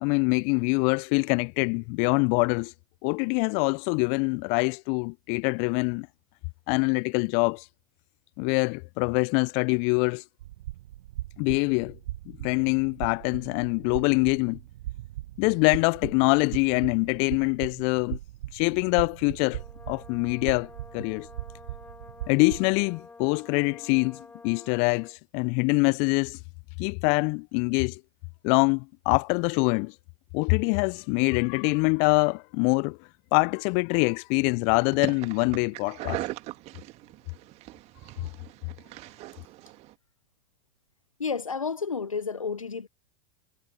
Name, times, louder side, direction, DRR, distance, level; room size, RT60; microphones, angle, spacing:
voice 1, 0.0-2.7 3.0-6.1 6.7-7.7 8.4-10.2 11.4-12.0 12.3-14.6 15.4-18.2 18.5-21.3 22.3-24.2 24.4-26.4 26.8-28.0 28.4-29.9 30.3-33.0 33.3-36.2, left 36 dB, 40° left, 0.5 m, -24 dB
sound 1, 10.4-22.9, right 15 dB, 60° right, 0.7 m, -39 dB
Brass instrument, 19.4-25.2, left 3 dB, 10° left, 5.1 m, -50 dB
sound 2, 34.8-39.9, right 18 dB, 40° right, 2.0 m, -39 dB
voice 2, 41.2-42.9, left 5 dB, 85° left, 0.9 m, -31 dB
figure-of-eight pair, 95°, 17 cm